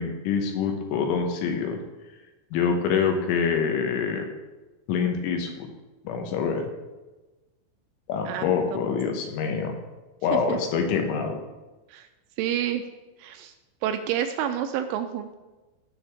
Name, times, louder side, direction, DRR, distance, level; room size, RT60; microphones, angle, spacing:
voice 1, 0.0-1.8 2.5-4.3 4.9-5.7 6.0-6.7 8.1-9.8 10.2-11.4, left 6 dB, 75° left, 4 dB, 3.3 m, -25 dB
voice 2, 12.4-12.8 13.2-13.5 13.8-15.3, right 10 dB, 80° right, 7 dB, 2.9 m, -28 dB
17.5 x 6.2 x 3.5 m, 1.1 s
omnidirectional pair, 5.9 m